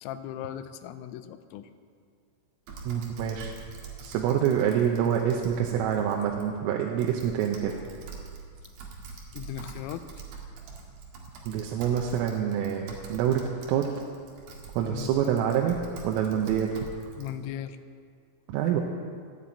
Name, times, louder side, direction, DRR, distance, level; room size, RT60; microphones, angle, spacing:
voice 1, 0.0-1.7 9.3-10.0 14.9-15.1 17.2-17.8, left 11 dB, 85° left, 10 dB, 3.3 m, -37 dB
Typing, 2.7-17.3, right 4 dB, 60° right, 3.6 m, -45 dB
voice 2, 2.9-3.5 4.0-7.8 11.5-14.0 14.8-15.8 16.0-16.9 18.5-18.8, right 9 dB, 85° right, 1 dB, 3.6 m, -26 dB
14.5 x 10.0 x 8.7 m, 2.1 s
omnidirectional pair, 5.8 m